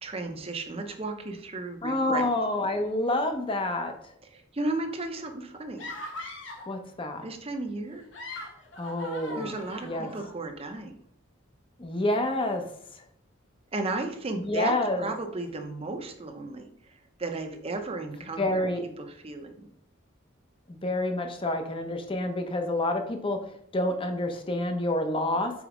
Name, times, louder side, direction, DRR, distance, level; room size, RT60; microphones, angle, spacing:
voice 1, 0.0-2.3 4.3-5.9 7.2-8.0 9.3-10.9 13.7-18.4 19.0-19.7, right 2 dB, 30° right, 5 dB, 0.7 m, -34 dB
voice 2, 1.8-3.9 6.7-7.2 8.8-9.5 9.8-10.1 11.8-12.6 14.4-15.1 18.4-18.8 20.7-23.4 23.7-25.5, left 1 dB, 25° left, 5 dB, 0.7 m, -28 dB
sound 1, 5.8-6.8 7.9-10.3, left 1 dB, 60° left, 1.1 m, -41 dB
5.0 x 4.1 x 5.0 m, 0.70 s
head